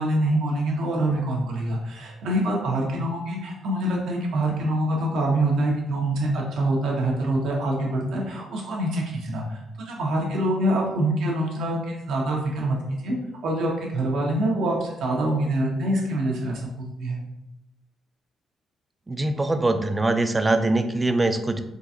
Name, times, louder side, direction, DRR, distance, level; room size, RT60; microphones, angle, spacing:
voice 1, 0.0-9.6 9.9-12.8 13.0-13.2 13.4-17.2, right 1 dB, 75° right, -1 dB, 0.9 m, -25 dB
voice 2, 19.1-21.6, right 2 dB, 20° right, 9 dB, 0.3 m, -23 dB
3.7 x 2.4 x 2.7 m, 0.87 s
cardioid pair, 90°, 0 cm